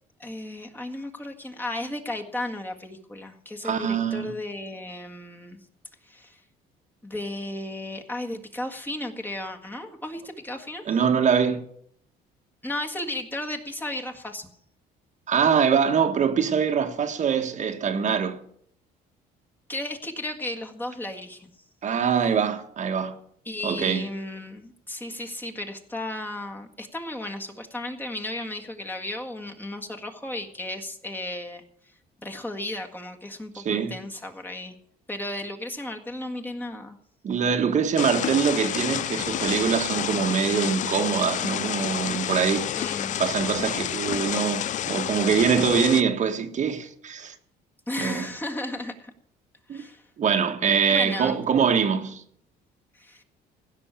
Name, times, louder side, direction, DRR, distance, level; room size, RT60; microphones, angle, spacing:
voice 1, 0.2-5.6 6.0-6.4 7.0-10.8 12.6-14.5 19.7-21.5 23.5-31.6 32.2-34.7 35.1-37.0 42.7-43.2 47.9-49.1 49.7-50.0 50.9-51.4 52.9-53.2, left 1 dB, 10° left, 1.7 m, -34 dB
voice 2, 3.6-4.3 10.9-11.6 15.3-18.4 21.8-23.2 23.6-24.1 33.5-34.0 37.2-42.7 43.2-47.3 48.0-48.3 49.7-49.8 50.2-52.2, right 7 dB, 45° right, 1.4 m, -23 dB
sound 1, 38.0-46.0, left 11 dB, 45° left, 0.4 m, -29 dB
16.5 x 6.2 x 8.8 m
cardioid pair, 110°, 17 cm